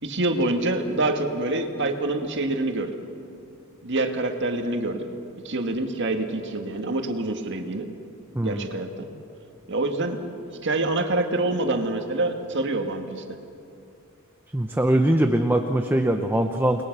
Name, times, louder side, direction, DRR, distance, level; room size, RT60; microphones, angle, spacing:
voice 1, 0.0-2.9 3.8-5.0 5.4-7.8 8.4-9.1 9.7-10.3 10.6-13.2, right 2 dB, 55° right, 5 dB, 1.9 m, -26 dB
voice 2, 8.3-8.7 14.5-16.8, right 1 dB, 10° right, 5 dB, 0.8 m, -22 dB
29.5 x 20.5 x 6.1 m, 2.6 s
head